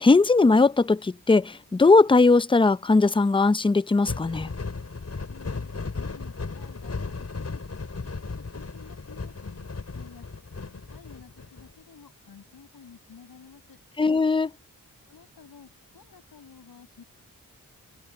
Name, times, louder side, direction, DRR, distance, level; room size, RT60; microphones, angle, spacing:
voice 1, 0.0-4.5 14.0-14.5, left 3 dB, 15° left, 0.6 m, -19 dB
sound 1, 4.1-11.7, left 4 dB, 45° left, 5.7 m, -36 dB
voice 2, 5.3-7.6 8.3-10.3 10.6-13.8 15.1-17.0, left 6 dB, 85° left, 6.3 m, -51 dB
cardioid pair, 70°, 35 cm